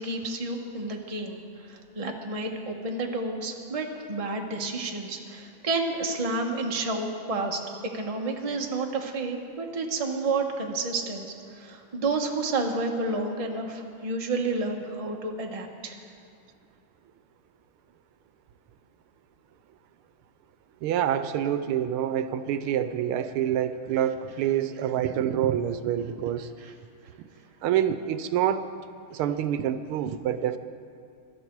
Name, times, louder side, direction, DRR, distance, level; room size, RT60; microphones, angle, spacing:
voice 1, 0.0-7.6 7.9-11.3 11.5-16.0 26.6-26.7, right 3 dB, 20° right, 2 dB, 1.0 m, -30 dB
voice 2, 20.8-26.5 27.6-28.7 29.1-30.6, right 10 dB, 80° right, 11 dB, 1.5 m, -27 dB
23.5 x 12.5 x 4.6 m, 2.4 s
omnidirectional pair, 2.4 m